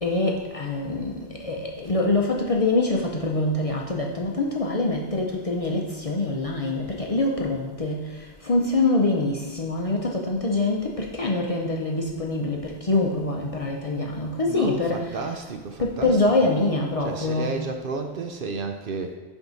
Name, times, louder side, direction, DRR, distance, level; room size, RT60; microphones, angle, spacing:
voice 1, 0.0-15.4 15.8-17.6, left 2 dB, 40° left, -1 dB, 0.6 m, -25 dB
voice 2, 14.5-16.3 17.0-19.2, right 4 dB, 60° right, 5 dB, 0.7 m, -32 dB
10.5 x 3.6 x 4.0 m, 1.2 s
omnidirectional pair, 1.2 m